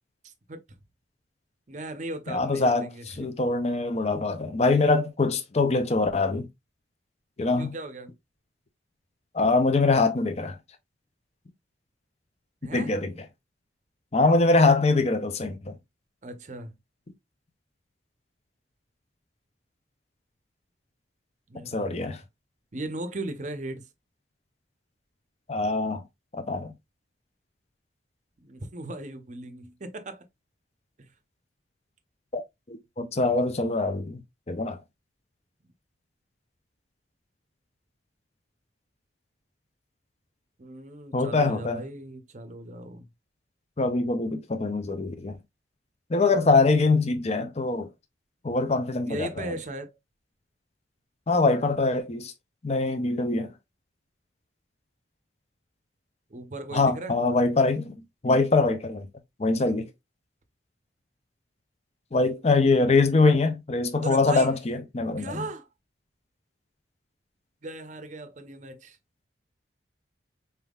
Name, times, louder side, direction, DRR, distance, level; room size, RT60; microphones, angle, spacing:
voice 1, 0.2-0.6 1.7-3.0 7.6-8.1 12.6-13.0 16.2-16.8 21.5-22.0 22.7-23.9 28.4-30.2 31.0-31.1 40.6-43.1 49.1-50.0 56.3-57.2 64.0-64.5 65.2-65.7 67.6-69.0, right 2 dB, 40° right, 0.7 m, -37 dB
voice 2, 2.3-6.5 7.4-7.7 9.3-10.6 12.7-13.1 14.1-15.7 21.7-22.2 25.5-26.0 26.4-26.7 32.3-32.4 32.7-34.2 34.5-34.8 41.1-41.8 43.8-45.4 46.1-47.9 48.4-49.5 51.3-52.3 52.6-53.5 56.7-58.0 58.2-59.1 59.4-59.9 62.1-65.4, left 3 dB, 35° left, 0.5 m, -23 dB
4.3 x 3.5 x 2.3 m
head